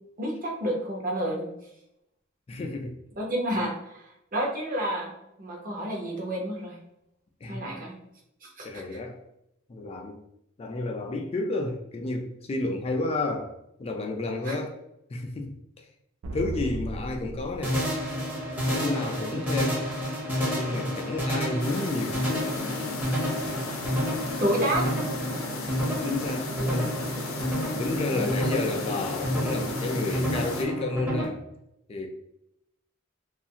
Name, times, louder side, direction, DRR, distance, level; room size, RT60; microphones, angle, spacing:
voice 1, 0.2-1.5 3.2-3.8 4.3-5.1 5.4-6.8 7.5-7.9 8.4-8.8 14.4-14.6 24.4-24.9 28.1-28.3, right 1 dB, 45° right, -1 dB, 0.7 m, -29 dB
voice 2, 2.5-3.0 3.6-3.7 7.4-7.8 8.6-9.2 9.7-10.2 10.6-13.5 13.8-14.8 15.1-15.5 15.8-15.9 16.3-17.8 18.7-19.9 20.5-22.2 26.0-26.9 27.8-31.4 31.9-32.1, left 2 dB, 30° left, 3 dB, 0.3 m, -31 dB
sound 1, 16.2-18.9, right 1 dB, 75° right, 0.4 m, -37 dB
sound 2, 17.6-31.2, equal, 10° right, 0.6 m, -30 dB
sound 3, 21.6-30.6, left 3 dB, 80° left, 0.5 m, -36 dB
2.4 x 2.4 x 2.7 m, 0.81 s
head